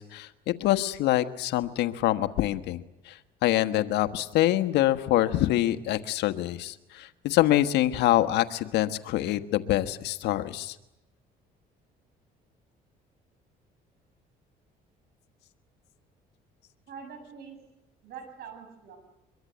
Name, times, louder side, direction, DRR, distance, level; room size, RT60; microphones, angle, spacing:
voice 1, 0.0-2.8 3.1-3.2 3.4-10.7, left 14 dB, 85° left, 10 dB, 1.4 m, -25 dB
voice 2, 16.9-17.6 18.0-19.0, right 6 dB, 70° right, 6 dB, 7.2 m, -44 dB
24.0 x 23.0 x 9.3 m, 0.90 s
cardioid pair, 110°, 17 cm